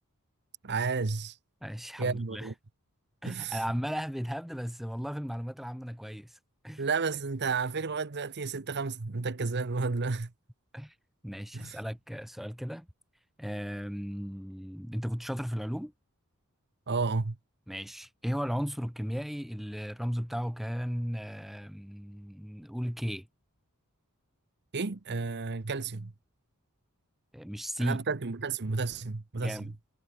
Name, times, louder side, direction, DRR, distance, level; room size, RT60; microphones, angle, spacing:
voice 1, 0.6-1.4 2.0-2.5 3.2-3.6 6.8-10.3 11.5-11.8 16.9-17.4 24.7-26.1 27.8-29.7, right 4 dB, 50° right, 0.9 m, -32 dB
voice 2, 1.6-2.5 3.2-6.4 6.6-6.8 10.7-10.9 11.2-12.9 13.4-15.9 17.7-23.3 27.3-28.0 29.4-29.7, equal, ahead, 0.6 m, -35 dB
head